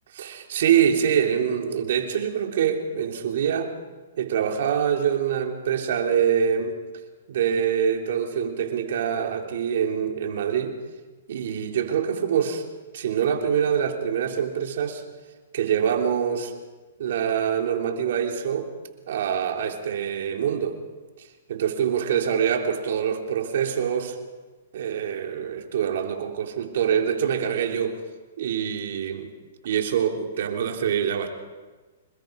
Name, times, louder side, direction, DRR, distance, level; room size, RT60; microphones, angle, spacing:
voice 1, 0.1-3.7 4.2-6.8 7.3-10.7 11.3-12.6 12.9-15.0 15.5-16.5 17.0-18.7 19.1-20.7 21.5-24.2 24.7-28.0 28.4-29.3 29.6-31.3, right 8 dB, 65° right, 3 dB, 3.4 m, -25 dB
27.0 x 21.0 x 5.3 m, 1.3 s
hypercardioid pair, 135°, 0 cm